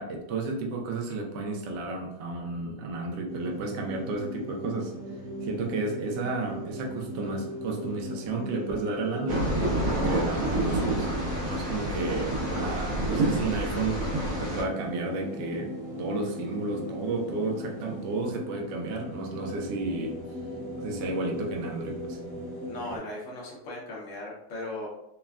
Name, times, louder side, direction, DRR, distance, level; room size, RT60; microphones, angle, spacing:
voice 1, 0.0-5.0 5.4-12.3 12.6-15.7 16.0-20.2 20.8-22.2, right 3 dB, 75° right, 1 dB, 0.6 m, -32 dB
sound 1, 3.3-23.0, equal, 5° right, 0.7 m, -38 dB
sound 2, 9.3-14.6, right 1 dB, 55° right, 1.0 m, -28 dB
voice 2, 22.6-24.9, left 1 dB, 65° left, -4 dB, 0.8 m, -37 dB
3.3 x 2.1 x 2.3 m, 0.83 s
omnidirectional pair, 1.7 m